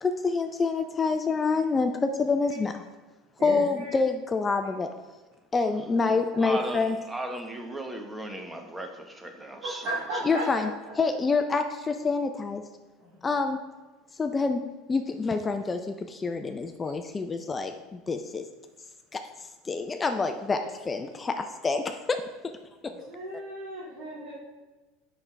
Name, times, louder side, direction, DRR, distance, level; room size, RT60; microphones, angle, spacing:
voice 1, 0.0-2.8 3.4-4.9 5.5-7.0 10.3-10.7 11.0-12.6 13.2-13.6 14.1-14.6 14.9-18.4 19.1-20.6 20.9-22.2 22.8-22.9, left 4 dB, 20° left, 0.4 m, -27 dB
voice 2, 3.4-4.0 5.9-6.5 9.6-10.7 13.0-13.2 20.5-20.7 22.9-24.4, right 1 dB, 65° right, 2.1 m, -36 dB
voice 3, 6.4-9.9, right 1 dB, 10° right, 0.9 m, -36 dB
7.1 x 5.9 x 3.3 m
supercardioid pair, 105°, 0 cm